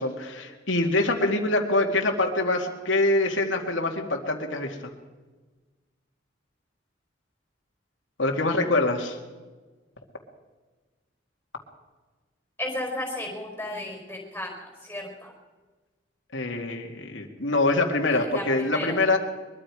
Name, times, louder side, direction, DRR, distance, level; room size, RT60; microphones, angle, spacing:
voice 1, 0.0-4.8 8.2-9.2 16.3-19.2, left 2 dB, 85° left, 1 dB, 2.3 m, -24 dB
voice 2, 12.6-15.3 18.3-18.9, left 1 dB, 10° left, 0 dB, 4.8 m, -34 dB
23.0 x 23.0 x 4.9 m, 1.3 s
head